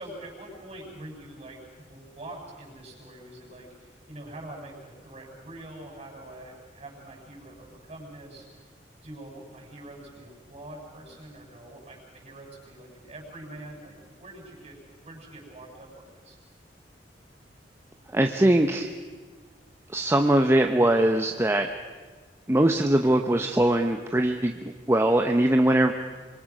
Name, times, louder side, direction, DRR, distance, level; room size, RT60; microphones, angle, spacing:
voice 1, 0.0-8.4 9.0-14.7 15.0-16.4, right 1 dB, 35° right, 0 dB, 7.6 m, -44 dB
voice 2, 18.1-18.9 19.9-21.7 22.5-25.9, right 1 dB, 15° right, 5 dB, 0.8 m, -21 dB
26.0 x 23.0 x 6.2 m, 1.4 s
head